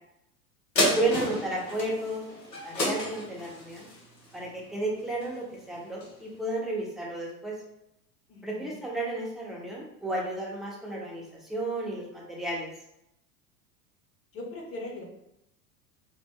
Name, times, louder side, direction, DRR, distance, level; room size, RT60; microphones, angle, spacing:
sound 1, 0.8-5.5 6.0-6.1, left 1 dB, 85° left, 1.0 m, -31 dB
voice 1, 0.8-2.2 2.6-3.9 4.3-7.5 8.4-12.7, right 2 dB, ahead, -4 dB, 0.7 m, -32 dB
voice 2, 8.3-8.7 14.3-15.0, left 2 dB, 30° left, 0 dB, 0.9 m, -39 dB
3.1 x 2.0 x 3.7 m, 0.82 s
figure-of-eight pair, 85°, 49 cm